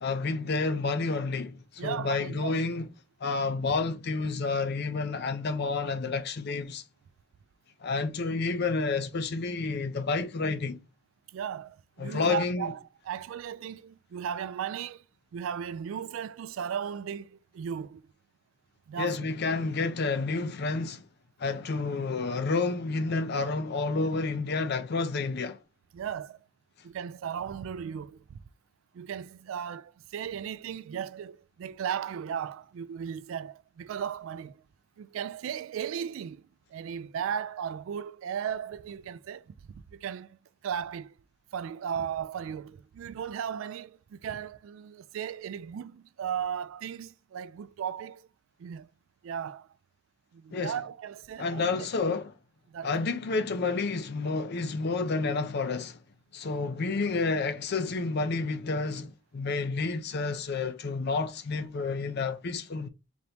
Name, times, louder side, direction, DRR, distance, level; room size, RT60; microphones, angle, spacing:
voice 1, 0.0-2.9 3.2-6.8 7.8-10.8 12.0-12.7 19.0-21.0 21.4-25.6 50.5-50.8 51.4-52.3 52.8-56.0 56.3-62.9, left 4 dB, 50° left, 0.5 m, -30 dB
voice 2, 1.8-2.6 11.3-15.0 15.3-18.1 18.9-19.3 25.9-26.5 26.8-28.4 28.9-34.6 35.0-36.4 36.7-41.2 41.5-48.3 48.6-48.9 49.2-49.7 50.3-51.9 52.7-52.9, right 8 dB, 75° right, 0.3 m, -36 dB
4.0 x 2.9 x 3.3 m
head